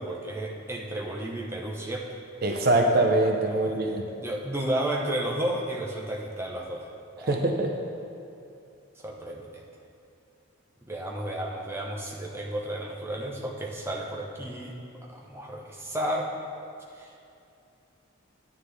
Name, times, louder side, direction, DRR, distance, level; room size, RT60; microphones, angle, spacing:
voice 1, 0.0-2.2 3.5-6.9 7.2-7.4 9.0-9.6 10.8-14.8 15.1-16.3 16.9-17.1, right 1 dB, 10° right, -1 dB, 0.8 m, -33 dB
voice 2, 2.4-4.1 7.2-7.7, right 2 dB, 45° right, 2 dB, 0.6 m, -23 dB
11.0 x 9.4 x 3.4 m, 2.6 s
head